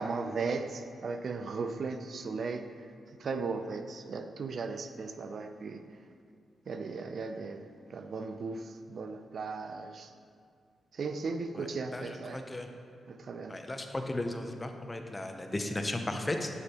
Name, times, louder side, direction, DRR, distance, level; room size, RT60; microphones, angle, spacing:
voice 1, 0.0-2.7 3.2-5.8 6.7-10.1 10.9-12.4 13.1-13.6, right 4 dB, 60° right, 8 dB, 0.4 m, -37 dB
voice 2, 11.9-12.7 13.5-16.5, left 1 dB, 20° left, 5 dB, 0.6 m, -35 dB
7.0 x 6.6 x 2.9 m, 2.3 s
cardioid pair, 85°, 0 cm